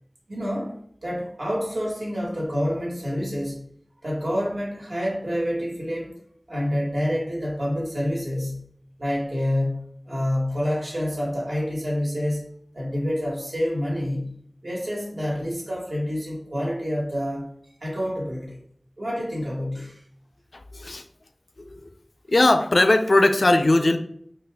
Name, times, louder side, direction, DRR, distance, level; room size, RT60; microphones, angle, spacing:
voice 1, 0.3-3.6 4.0-6.1 6.5-8.7 9.0-12.4 12.7-14.3 14.6-17.5 17.8-18.6 19.0-20.0, equal, 75° right, -4 dB, 1.4 m, -27 dB
voice 2, 20.5-21.0 22.3-24.0, left 2 dB, 80° left, 7 dB, 0.3 m, -19 dB
4.1 x 2.5 x 3.3 m, 0.66 s
wide cardioid pair, 45°, 0 cm